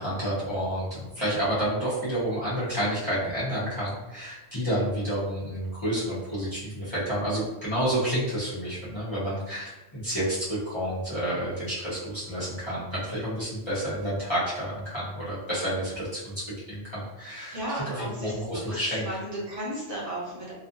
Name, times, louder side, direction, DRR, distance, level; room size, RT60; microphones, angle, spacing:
voice 1, 0.0-16.3 16.7-17.6 17.9-19.1, equal, 30° left, -11 dB, 0.8 m, -30 dB
voice 2, 17.5-20.5, equal, 55° right, -6 dB, 1.0 m, -34 dB
2.5 x 2.5 x 2.5 m, 1.0 s
omnidirectional pair, 1.1 m